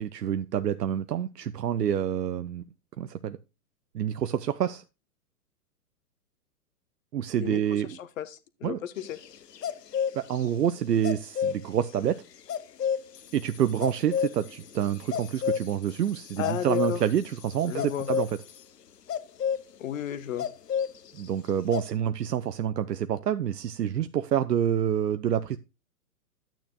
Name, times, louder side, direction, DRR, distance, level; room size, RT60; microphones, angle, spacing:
voice 1, 0.0-2.6 3.0-3.4 3.9-4.8 7.1-8.0 8.6-8.8 10.1-12.2 13.3-18.3 21.2-25.6, right 10 dB, 85° right, 0.7 m, -27 dB
voice 2, 7.9-9.2 16.4-17.0 17.7-18.1 19.8-20.5, left 10 dB, 55° left, 1.2 m, -33 dB
sound 1, 9.0-10.4 11.0-11.6 12.5-13.2 13.8-14.6 15.0-15.7 16.3-17.0 17.8-18.3 19.1-19.6 20.4-21.2 21.5-21.9, left 8 dB, 90° left, 0.8 m, -29 dB
sound 2, 13.1-18.7, left 8 dB, 75° left, 2.2 m, -52 dB
11.5 x 9.1 x 2.2 m
hypercardioid pair, 125°, 47 cm